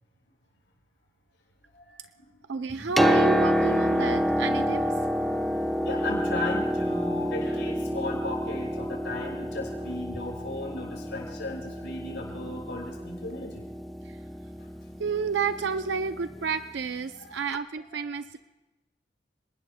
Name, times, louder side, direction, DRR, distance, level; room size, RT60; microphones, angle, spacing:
voice 1, 1.7-2.3 5.8-13.6 15.0-15.1 17.1-17.5 17.9-18.1, left 2 dB, 85° left, -2 dB, 6.5 m, -36 dB
voice 2, 2.5-4.8 14.1-14.2 15.0-18.4, right 5 dB, 75° right, 10 dB, 0.5 m, -30 dB
Piano, 2.7-16.4 17.5-17.6, equal, ahead, 0.6 m, -28 dB
29.5 x 19.5 x 2.2 m, 1.1 s
head